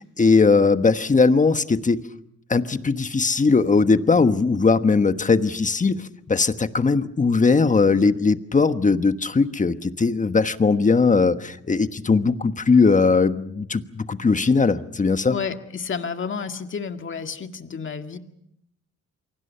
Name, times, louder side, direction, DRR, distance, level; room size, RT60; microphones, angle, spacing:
voice 1, 0.0-2.0 2.5-15.4, left 4 dB, 25° left, 10 dB, 1.3 m, -19 dB
voice 2, 15.3-18.2, left 6 dB, 40° left, 6 dB, 2.0 m, -31 dB
29.0 x 23.5 x 5.6 m, 0.75 s
cardioid pair, 90°, 30 cm